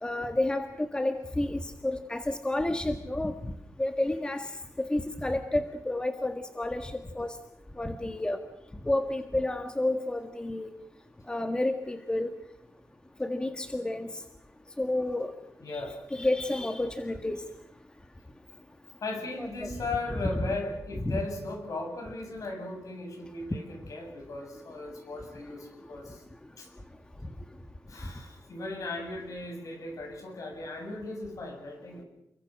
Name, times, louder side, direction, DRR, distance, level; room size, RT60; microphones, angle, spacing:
voice 1, 0.0-3.5 3.8-4.5 4.8-7.4 7.8-8.4 8.8-10.7 11.3-12.3 13.2-14.1 14.8-15.3 15.7-15.8 16.1-17.4 19.4-19.7 21.0-21.2, left 1 dB, 15° left, 7 dB, 1.6 m, -30 dB
voice 2, 15.6-16.0 19.0-26.2 26.6-26.7 27.9-32.1, left 2 dB, 60° left, 3 dB, 7.8 m, -37 dB
29.0 x 22.5 x 6.5 m, 0.79 s
wide cardioid pair, 130°, 6 cm